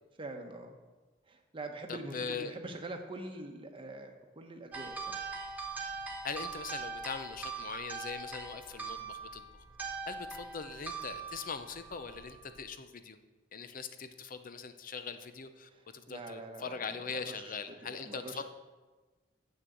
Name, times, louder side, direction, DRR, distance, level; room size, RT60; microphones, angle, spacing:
voice 1, 0.2-0.7 1.3-5.2 15.7-15.8 16.1-17.5 17.8-18.4, right 2 dB, 30° right, 3 dB, 1.0 m, -44 dB
voice 2, 1.9-2.6 6.2-9.5 10.1-13.2 13.5-18.4, left 5 dB, 50° left, 10 dB, 0.7 m, -41 dB
sound 1, 4.7-12.6, right 5 dB, 10° right, 1.5 m, -42 dB
7.6 x 6.4 x 7.8 m, 1.3 s
head